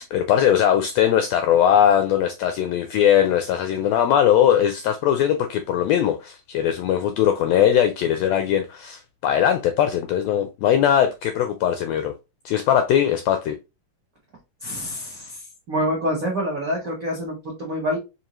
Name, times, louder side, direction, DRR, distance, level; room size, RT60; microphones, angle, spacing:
voice 1, 0.0-12.1 12.4-13.6, left 10 dB, 85° left, 1.5 m, -20 dB
voice 2, 14.6-15.4 15.7-18.0, equal, 70° right, 0.8 m, -26 dB
5.1 x 2.6 x 3.0 m
omnidirectional pair, 3.4 m